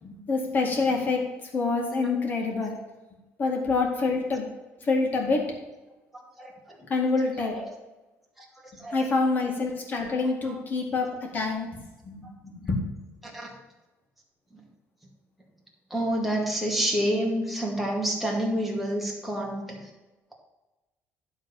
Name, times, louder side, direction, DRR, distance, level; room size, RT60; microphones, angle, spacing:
voice 1, 0.0-2.8 3.4-4.5 4.8-5.6 6.9-7.6 8.9-12.9, left 3 dB, 35° left, 1 dB, 2.2 m, -27 dB
voice 2, 6.1-6.8 7.4-7.7 8.4-9.0 10.4-10.6 13.2-13.5 14.5-14.6 15.9-19.9, right 1 dB, ahead, -2 dB, 2.1 m, -29 dB
11.5 x 3.9 x 7.2 m, 1.1 s
cardioid pair, 140°, 5 cm